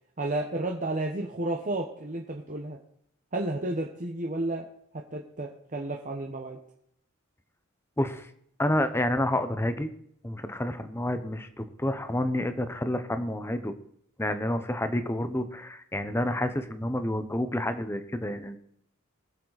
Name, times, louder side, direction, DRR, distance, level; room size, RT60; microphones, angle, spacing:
voice 1, 0.2-2.8 3.3-4.7 4.9-6.6, right 2 dB, 40° right, 1 dB, 1.1 m, -32 dB
voice 2, 8.0-8.3 8.6-9.9 10.2-13.7 14.2-18.6, left 1 dB, 10° left, 10 dB, 0.9 m, -29 dB
21.5 x 7.4 x 4.1 m, 0.72 s
head